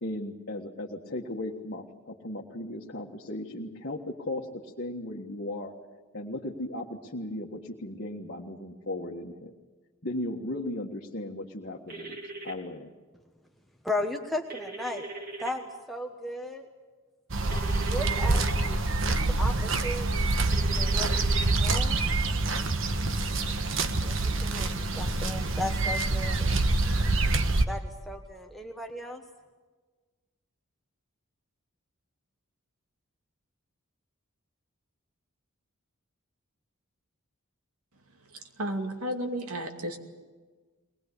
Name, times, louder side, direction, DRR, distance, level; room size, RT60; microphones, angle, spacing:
voice 1, 0.0-4.5 4.8-5.7 6.1-9.5 10.0-12.9, left 1 dB, 50° left, -2 dB, 1.6 m, -36 dB
sound 1, 11.9-12.5 14.5-15.5 17.5-18.5 20.5-21.5, right 3 dB, 45° right, 3.2 m, -40 dB
voice 2, 13.8-15.1 15.4-16.7 17.8-20.3 20.8-21.3 21.6-22.0 23.9-26.5 27.7-29.2, left 1 dB, ahead, 2 dB, 1.1 m, -36 dB
sound 2, 17.3-27.7, right 2 dB, 60° right, 1.3 m, -26 dB
voice 3, 38.6-40.0, right 1 dB, 85° right, 5 dB, 2.4 m, -32 dB
22.5 x 20.0 x 8.4 m, 1.4 s
head